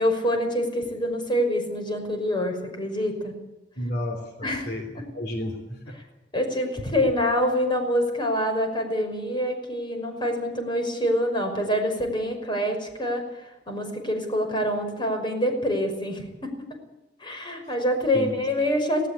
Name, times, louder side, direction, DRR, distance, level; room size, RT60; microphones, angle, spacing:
voice 1, 0.0-3.3 4.4-4.7 6.3-16.5 17.2-19.1, equal, 25° left, 4 dB, 5.7 m, -26 dB
voice 2, 3.8-4.8 5.1-5.9 18.1-18.4, left 1 dB, 65° left, 4 dB, 3.3 m, -32 dB
19.0 x 18.5 x 8.5 m, 1.0 s
head